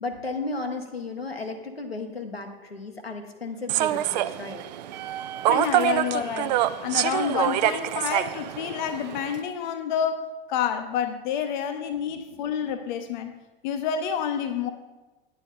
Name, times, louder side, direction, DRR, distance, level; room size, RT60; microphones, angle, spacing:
voice 1, 0.0-5.1, left 3 dB, 85° left, 1.1 m, -34 dB
Human voice / Subway metro underground, 3.7-9.4, right 13 dB, 45° right, 0.4 m, -26 dB
voice 2, 5.5-14.7, left 8 dB, 50° left, 0.8 m, -29 dB
9.9 x 9.1 x 3.8 m
figure-of-eight pair, 90°, 30 cm